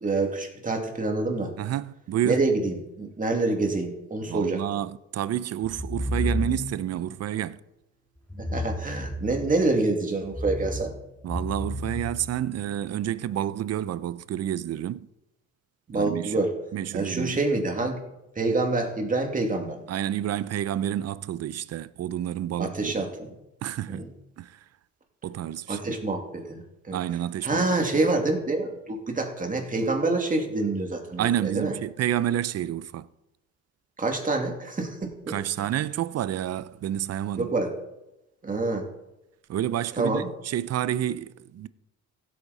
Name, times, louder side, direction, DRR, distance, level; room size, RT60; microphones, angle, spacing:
voice 1, 0.0-1.5 2.2-4.6 8.4-10.9 15.9-16.5 16.9-18.0 18.4-19.8 22.6-23.3 23.9-24.1 25.7-27.0 27.4-31.7 34.0-35.3 37.4-37.7 38.4-38.9 40.0-40.3, right 2 dB, 25° right, 2.4 m, -27 dB
voice 2, 1.6-2.4 4.3-7.6 11.2-15.1 15.9-16.3 16.7-17.4 19.9-23.1 23.6-24.1 24.4-24.6 25.2-26.0 26.9-27.7 31.2-33.1 35.3-37.5 39.5-41.7, right 11 dB, 55° right, 0.6 m, -29 dB
sound 1, 5.6-6.9 8.3-9.7 10.2-12.7, left 1 dB, 5° left, 1.9 m, -32 dB
15.5 x 8.4 x 4.1 m
cardioid pair, 90°, 30 cm